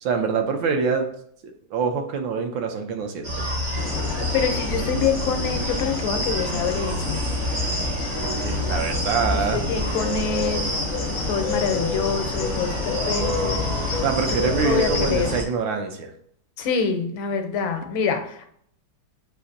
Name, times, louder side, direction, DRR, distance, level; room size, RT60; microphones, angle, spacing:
voice 1, 0.0-1.1 1.7-3.3 8.2-9.6 14.0-16.1, right 5 dB, 80° right, 5 dB, 1.3 m, -25 dB
sound 1, 3.2-15.4, equal, 50° right, 0.9 m, -29 dB
sound 2, 3.7-15.4, left 4 dB, 65° left, 0.7 m, -29 dB
voice 2, 4.3-7.2 9.3-10.7 11.2-13.6 14.4-15.3 16.6-18.5, left 5 dB, 85° left, 6 dB, 1.4 m, -26 dB
6.9 x 2.5 x 2.5 m, 0.65 s
omnidirectional pair, 2.1 m